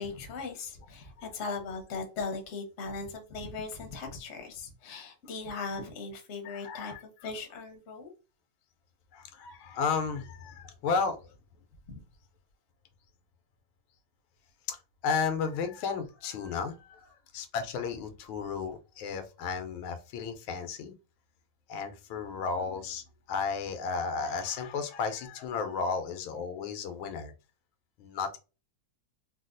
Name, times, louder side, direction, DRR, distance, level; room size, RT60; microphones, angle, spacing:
voice 1, 0.0-8.1 11.9-12.0, left 4 dB, 55° left, 0.8 m, -39 dB
voice 2, 6.4-7.3 9.1-11.2 14.7-20.9 21.7-27.3 28.0-28.4, left 5 dB, 90° left, 1.4 m, -33 dB
4.0 x 2.2 x 2.5 m
omnidirectional pair, 2.2 m